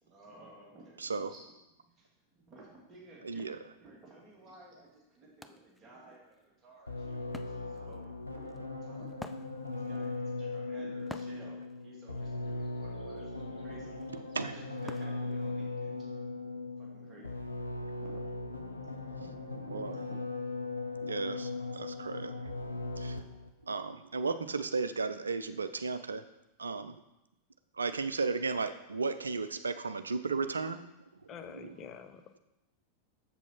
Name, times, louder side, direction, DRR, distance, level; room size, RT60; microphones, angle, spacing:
voice 1, 0.0-1.4 2.0-3.6 3.8-9.2 9.7-16.1 16.8-17.5 18.0-18.3 18.8-20.2, right 2 dB, 25° right, -3 dB, 2.2 m, -55 dB
voice 2, 1.0-1.3 3.2-3.6 14.1-14.6 19.7-20.0 21.0-22.4 23.0-23.2 23.6-26.2 26.6-27.0 27.7-30.9 31.2-31.8, right 4 dB, 75° right, 11 dB, 0.5 m, -35 dB
Wood, 4.3-4.4 4.8-16.0, left 1 dB, 5° left, 0.4 m, -52 dB
sound 1, 6.9-23.5, left 3 dB, 85° left, 0.7 m, -39 dB
voice 3, 31.3-32.4, left 7 dB, 30° left, 7 dB, 0.7 m, -47 dB
7.1 x 7.0 x 4.4 m, 0.90 s
figure-of-eight pair, 90°, 0 cm